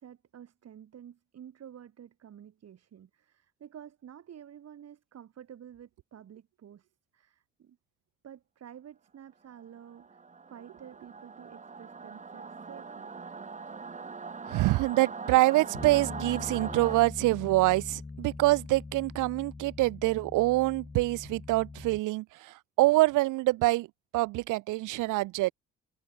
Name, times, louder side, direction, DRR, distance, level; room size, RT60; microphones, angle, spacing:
voice 1, 0.0-6.9 7.1-7.8 8.2-13.1, right 9 dB, 55° right, 2.3 m, -50 dB
Singing / Musical instrument, 9.8-17.0, right 4 dB, 25° right, 1.2 m, -42 dB
voice 2, 14.5-23.9 24.1-25.5, right 19 dB, 85° right, 0.5 m, -25 dB
Bass guitar, 15.7-22.0, left 3 dB, 20° left, 1.6 m, -42 dB
cardioid pair, 90°, 30 cm